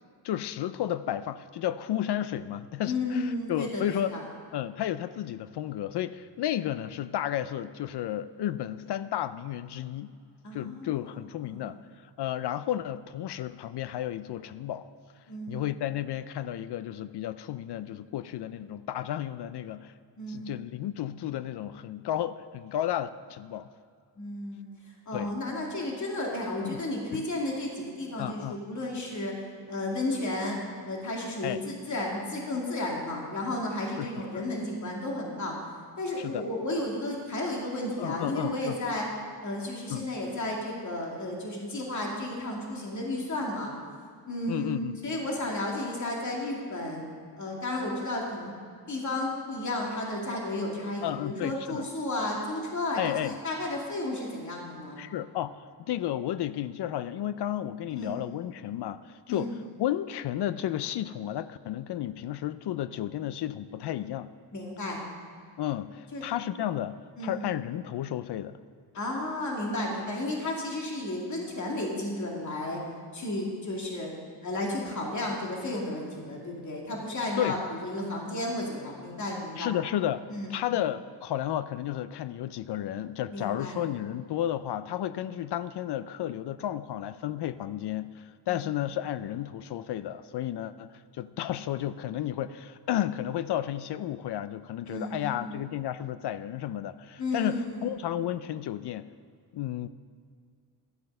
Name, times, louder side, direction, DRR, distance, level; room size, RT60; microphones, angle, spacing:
voice 1, 0.2-4.1 4.5-10.1 10.5-11.8 12.2-14.9 15.5-19.9 20.3-23.7 25.1-25.3 26.6-26.8 27.1-27.2 28.2-28.6 31.4-31.6 34.0-34.1 34.3-34.4 36.2-36.4 38.0-38.8 39.9-40.1 44.5-45.0 51.0-51.9 53.0-53.4 55.0-55.6 55.9-64.3 65.6-68.6 77.4-77.6 79.6-99.1 99.5-99.9, left 12 dB, 70° left, 14 dB, 0.5 m, -32 dB
voice 2, 2.9-4.2 10.4-11.1 11.5-11.7 15.3-15.6 20.2-20.5 24.2-24.6 25.1-29.3 29.7-30.6 30.8-35.5 36.0-39.1 39.4-43.7 44.3-44.7 45.0-47.0 47.4-48.5 48.9-55.0 57.9-58.1 59.3-59.5 64.5-65.0 66.1-66.3 67.2-67.4 69.0-72.8 73.1-74.1 74.4-79.7 80.3-80.5 83.3-83.8 88.5-88.6 94.8-95.5 97.2-97.9, left 1 dB, 40° left, -2 dB, 2.3 m, -33 dB
13.0 x 7.7 x 5.4 m, 2.2 s
cardioid pair, 95°, 43 cm